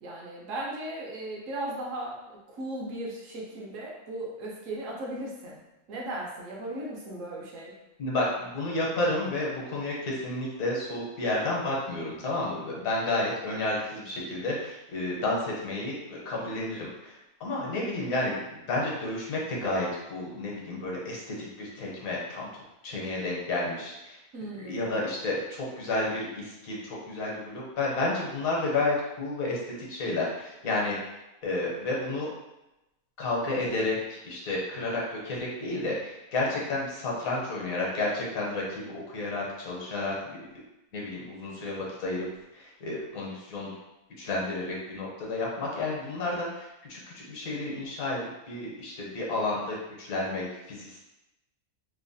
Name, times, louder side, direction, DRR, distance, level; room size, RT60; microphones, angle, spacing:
voice 1, 0.0-5.6 5.9-7.7 24.3-24.8, right 1 dB, 65° right, -3 dB, 1.0 m, -37 dB
voice 2, 8.0-24.2 24.5-31.0 31.4-32.3 33.2-40.1 40.5-40.6 40.9-42.3 42.5-43.7 44.2-51.0, left 2 dB, 75° left, -4 dB, 1.2 m, -31 dB
3.1 x 2.2 x 2.6 m, 0.95 s
omnidirectional pair, 1.5 m